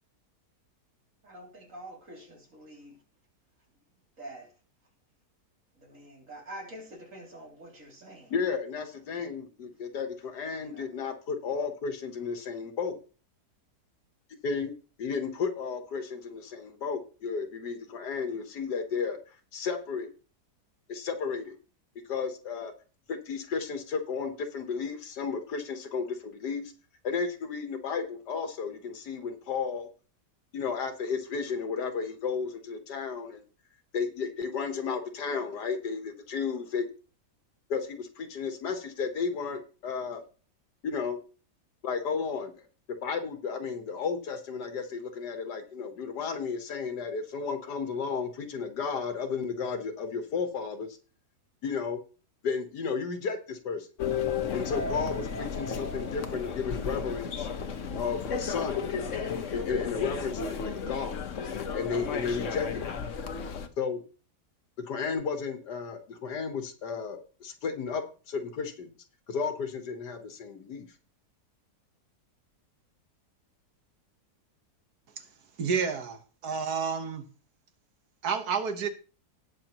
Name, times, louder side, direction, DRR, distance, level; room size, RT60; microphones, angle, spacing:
voice 1, 1.2-3.0 4.2-4.5 5.8-8.3 10.6-10.8, right 1 dB, 50° right, 3.3 m, -46 dB
voice 2, 8.3-13.0 14.4-14.7 15.0-19.2 19.5-20.1 20.9-21.6 22.1-22.7 23.1-26.7 27.0-29.9 30.5-33.4 33.9-36.9 37.7-40.2 40.8-41.2 41.8-42.6 43.0-50.9 51.6-52.0 52.4-53.9 54.5-57.5 57.9-58.8 59.5-61.2 61.7-63.0 63.8-64.0 64.8-68.9 69.3-70.9, left 5 dB, 85° left, 1.8 m, -33 dB
sound 1, 54.0-63.7, left 6 dB, 55° left, 1.2 m, -33 dB
voice 3, 75.6-77.3 78.2-78.9, right 6 dB, 70° right, 1.7 m, -30 dB
18.5 x 6.3 x 3.0 m
omnidirectional pair, 1.7 m